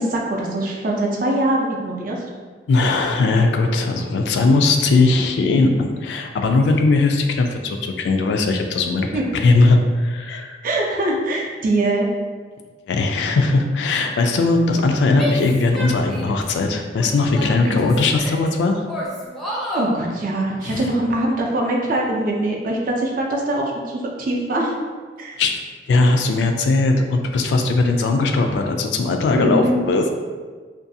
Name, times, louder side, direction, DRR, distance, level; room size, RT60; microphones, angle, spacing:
voice 1, 0.0-2.2 9.1-9.2 10.6-12.1 17.7-17.8 19.7-24.7 25.2-25.4 29.4-29.8, right 1 dB, 50° right, -1 dB, 0.4 m, -22 dB
voice 2, 2.7-9.1 9.3-10.6 12.9-18.8 20.6-20.9 25.4-25.5 25.9-30.1, left 3 dB, 75° left, 4 dB, 0.3 m, -19 dB
Female speech woman speaking / Yell, 15.2-16.5 17.0-18.5 18.9-19.9, left 1 dB, ahead, 0.5 m, -30 dB
2.5 x 2.3 x 2.6 m, 1.5 s
head